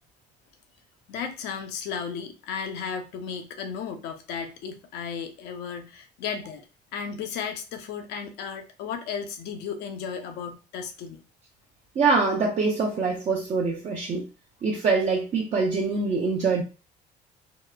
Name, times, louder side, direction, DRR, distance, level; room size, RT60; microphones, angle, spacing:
voice 1, 1.1-6.6 6.9-11.2, left 6 dB, 85° left, 0.5 m, -34 dB
voice 2, 12.0-14.3 14.6-16.6, right 4 dB, 40° right, 0.5 m, -24 dB
2.8 x 2.0 x 2.2 m
cardioid pair, 110°, 17 cm